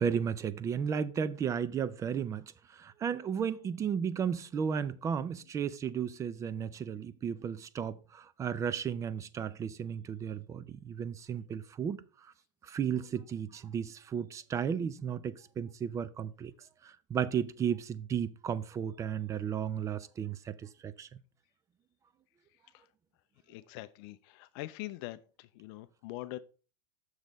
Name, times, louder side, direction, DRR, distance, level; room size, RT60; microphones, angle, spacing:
voice 1, 0.0-2.4 2.8-12.0 12.7-16.5 17.1-20.5 20.8-21.1, right 7 dB, 20° right, 0.4 m, -34 dB
voice 2, 23.5-26.4, left 17 dB, 50° left, 0.5 m, -43 dB
7.2 x 6.4 x 4.0 m
supercardioid pair, 135°, 17 cm